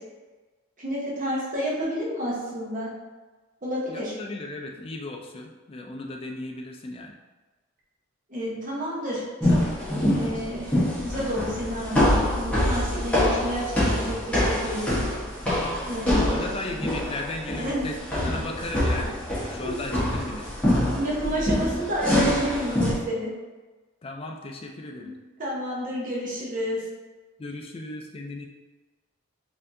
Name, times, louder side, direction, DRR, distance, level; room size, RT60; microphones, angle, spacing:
voice 1, 0.8-2.9 3.6-4.1 8.3-15.1 15.9-16.6 17.6-17.9 18.2-18.3 19.6-19.8 20.8-23.3 25.0-25.1 25.4-26.9, equal, 40° right, -5 dB, 0.9 m, -30 dB
voice 2, 3.9-7.2 16.0-20.4 24.0-25.1 27.4-28.5, left 2 dB, 25° left, 2 dB, 0.3 m, -36 dB
sound 1, 9.4-22.9, left 1 dB, 5° left, 1.0 m, -25 dB
4.2 x 2.7 x 2.5 m, 1.3 s
head